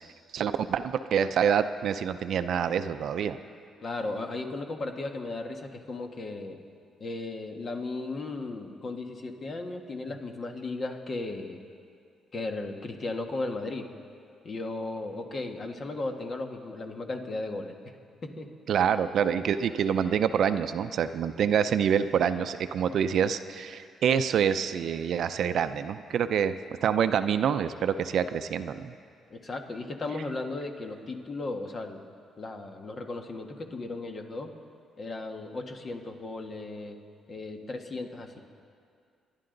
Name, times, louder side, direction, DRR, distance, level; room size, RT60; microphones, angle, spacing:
voice 1, 0.3-3.4 18.7-26.6 26.8-28.9, right 8 dB, 65° right, 11 dB, 0.5 m, -26 dB
voice 2, 3.8-6.6 7.0-11.7 12.3-13.9 14.4-17.7 18.2-18.5 29.3-32.0 32.4-34.5 35.0-37.0 37.3-38.4, left 2 dB, 40° left, 4 dB, 1.5 m, -36 dB
27.5 x 10.5 x 3.9 m, 2.3 s
cardioid pair, 90°, 0 cm